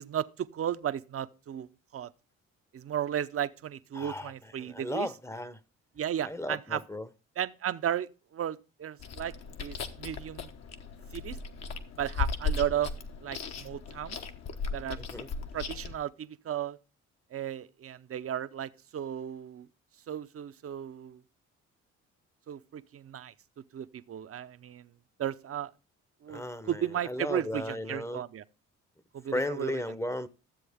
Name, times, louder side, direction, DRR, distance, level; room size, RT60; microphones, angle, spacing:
voice 1, 0.0-1.7 1.9-2.1 2.7-5.1 6.0-6.8 7.4-9.3 9.6-10.5 11.1-11.4 12.0-12.9 13.2-14.2 14.7-15.0 15.5-16.8 17.3-19.7 20.1-21.2 22.5-23.3 23.7-24.9 25.2-25.7 26.2-28.4 29.1-29.8, right 10 dB, 50° right, 0.7 m, -34 dB
voice 2, 3.9-5.6 6.2-7.1 15.0-15.3 26.3-28.2 29.3-30.3, left 1 dB, 10° left, 0.8 m, -35 dB
Chewing mastication, 9.0-16.0, left 5 dB, 60° left, 1.2 m, -37 dB
13.0 x 7.6 x 3.5 m
cardioid pair, 90°, 30 cm